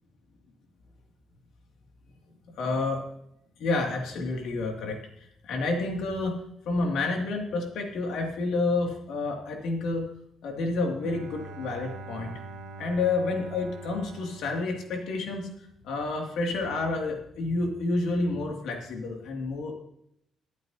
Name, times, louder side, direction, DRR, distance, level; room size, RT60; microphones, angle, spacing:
voice 1, 2.6-3.0 3.6-5.0 5.4-10.1 10.4-12.3 12.8-15.5 15.8-19.7, left 3 dB, 80° left, 1 dB, 2.6 m, -29 dB
Bowed string instrument, 11.0-15.7, right 2 dB, 85° right, 1.2 m, -44 dB
22.5 x 8.2 x 2.9 m, 0.76 s
cardioid pair, 135°, 0 cm